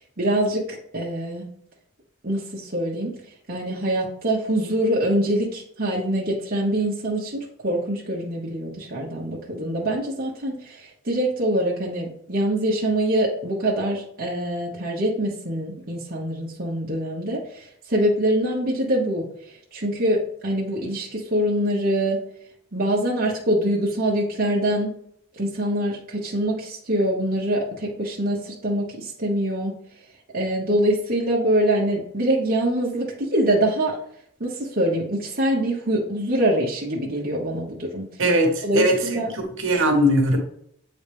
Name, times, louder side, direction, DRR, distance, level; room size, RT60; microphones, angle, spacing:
voice 1, 0.0-1.5 2.2-3.1 3.5-22.2 22.7-24.9 25.4-29.7 30.3-34.0 34.4-38.1 38.6-39.3, right 1 dB, 45° right, -4 dB, 1.1 m, -24 dB
voice 2, 38.2-38.9 39.3-40.4, equal, 60° right, 3 dB, 1.4 m, -20 dB
8.3 x 4.0 x 3.5 m, 0.68 s
head